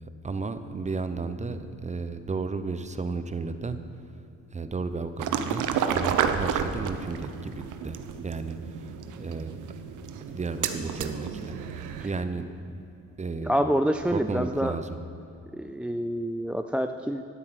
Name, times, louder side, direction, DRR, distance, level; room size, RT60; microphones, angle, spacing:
voice 1, 0.2-3.8 4.5-8.6 9.1-9.6 10.3-12.5 13.2-13.6 14.1-15.0, right 4 dB, 25° right, 10 dB, 0.8 m, -33 dB
sound 1, 5.2-12.2, right 7 dB, 80° right, 0.9 m, -31 dB
voice 2, 13.4-14.8 15.5-17.2, equal, 5° right, 7 dB, 0.4 m, -27 dB
12.0 x 9.6 x 7.6 m, 2.8 s
cardioid pair, 90°, 30 cm